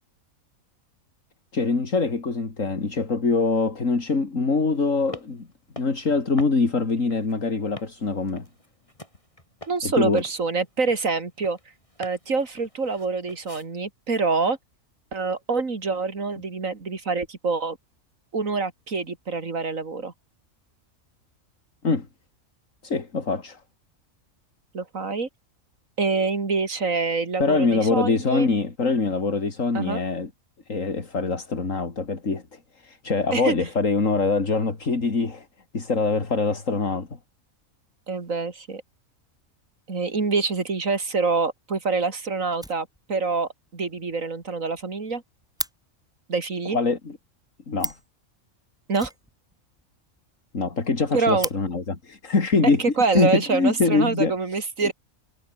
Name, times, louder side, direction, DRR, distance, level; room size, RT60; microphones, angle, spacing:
voice 1, 1.5-5.5 5.8-8.5 9.8-10.2 21.8-22.1 22.8-23.6 27.4-30.3 30.7-35.5 35.7-37.2 46.7-47.2 47.7-47.9 50.5-52.8 53.1-54.7, left 4 dB, 70° left, 3.3 m, -24 dB
sound 1, 4.7-13.7, left 1 dB, 25° left, 8.1 m, -47 dB
voice 2, 9.7-11.6 12.0-14.6 15.1-17.8 18.3-20.1 24.7-25.3 26.0-28.5 29.7-30.0 33.3-33.5 38.1-38.8 39.9-45.2 46.3-46.8 48.9-49.1 51.1-51.5 53.0-54.9, right 4 dB, 75° right, 3.1 m, -26 dB
Fire, 42.5-43.4 43.7-43.8 44.1-44.2 44.4-44.5 44.8-45.7 47.5-47.6 47.8-48.2 48.9-49.9 50.2-50.3 50.5-50.6 51.0-51.6 52.6-52.7 53.3-53.9, equal, 5° right, 2.1 m, -35 dB
omnidirectional pair, 1.4 m